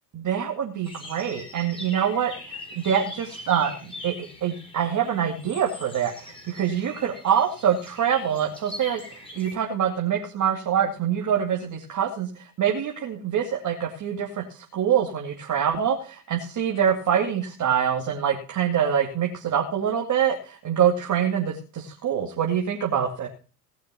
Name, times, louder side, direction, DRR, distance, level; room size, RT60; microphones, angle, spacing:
voice 1, 0.1-4.1 4.4-23.3, right 8 dB, 40° right, 0 dB, 2.4 m, -25 dB
sound 1, 0.8-9.5, left 1 dB, 10° left, 6.0 m, -42 dB
18.0 x 6.5 x 6.9 m, 0.37 s
hypercardioid pair, 80°, 47 cm